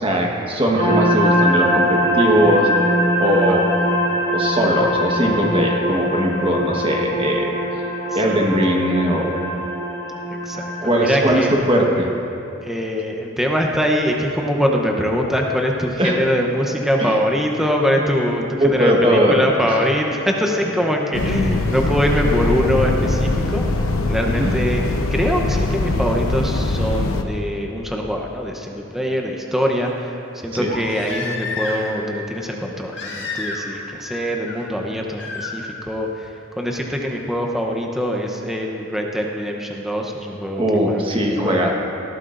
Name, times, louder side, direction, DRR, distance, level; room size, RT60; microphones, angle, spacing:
voice 1, 0.0-2.7 3.2-3.7 4.3-7.6 8.1-9.3 10.8-12.1 16.0-16.2 17.0-17.1 18.6-19.8 24.3-24.5 30.5-30.7 40.6-41.7, equal, 25° right, 0 dB, 1.3 m, -19 dB
sound 1, 0.8-11.5, equal, 45° right, 2.8 m, -22 dB
voice 2, 10.5-11.6 12.6-23.8 24.1-24.8 25.1-30.1 30.3-36.3 36.6-41.7, equal, ahead, 0 dB, 0.8 m, -23 dB
sound 2, 21.1-27.2, left 2 dB, 85° left, 0.9 m, -22 dB
Crying sobbing, 27.9-28.0 30.7-32.0 32.9-33.8 34.0-34.6 35.2-35.5 37.1-37.2, left 3 dB, 55° left, 1.9 m, -30 dB
19.0 x 13.0 x 2.6 m, 3.0 s
head